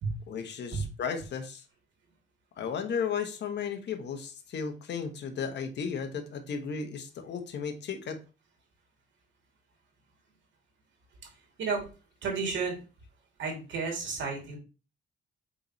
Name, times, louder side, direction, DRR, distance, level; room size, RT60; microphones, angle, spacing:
voice 1, 0.3-1.6 2.6-8.2, left 6 dB, 60° left, 6 dB, 1.2 m, -34 dB
voice 2, 12.2-12.8 13.4-14.6, right 4 dB, 70° right, 0 dB, 2.9 m, -32 dB
7.5 x 4.2 x 3.2 m, 0.32 s
cardioid pair, 90°, 20 cm